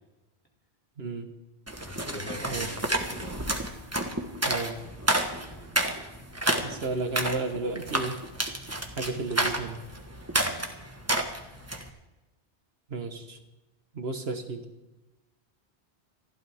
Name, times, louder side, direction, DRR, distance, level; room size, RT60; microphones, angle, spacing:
voice 1, 1.0-1.3 2.5-2.6 4.5-4.8 6.6-8.2 9.0-9.8 12.9-13.4 13.9-14.7, right 3 dB, 70° right, 6 dB, 1.5 m, -33 dB
sound 1, 1.7-11.9, right 1 dB, 15° right, 1.3 m, -30 dB
voice 2, 1.8-3.5 5.5-5.9 10.3-10.8, equal, 10° left, -1 dB, 2.8 m, -43 dB
28.0 x 11.5 x 3.5 m, 1.0 s
omnidirectional pair, 1.1 m